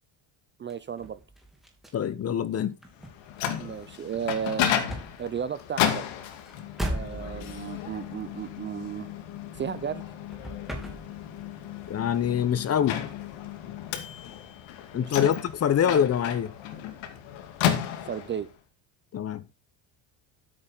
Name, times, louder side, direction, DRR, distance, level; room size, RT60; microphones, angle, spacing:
voice 1, 0.6-1.2 3.6-4.7 5.2-6.0 6.8-9.1 9.5-10.0 14.9-15.4 18.1-18.5, right 8 dB, 25° right, 0.5 m, -34 dB
sound 1, 0.7-10.0 10.3-11.5 11.8-13.3, equal, ahead, 3.1 m, -40 dB
voice 2, 1.9-2.8 11.9-13.0 14.9-16.5 19.1-19.5, left 9 dB, 30° left, 0.9 m, -25 dB
Microwave oven, 3.0-18.5, left 9 dB, 70° left, 2.5 m, -33 dB
12.5 x 8.8 x 4.0 m
cardioid pair, 150°, 47 cm